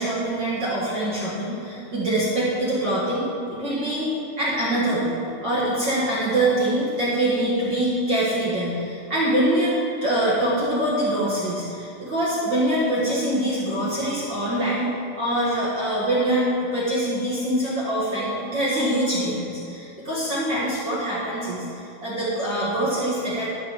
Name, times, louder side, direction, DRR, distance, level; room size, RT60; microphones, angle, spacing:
voice 1, 0.0-14.9 15.1-16.5 16.7-23.5, right 1 dB, 45° right, -7 dB, 1.5 m, -24 dB
12.0 x 6.8 x 6.8 m, 2.6 s
omnidirectional pair, 4.7 m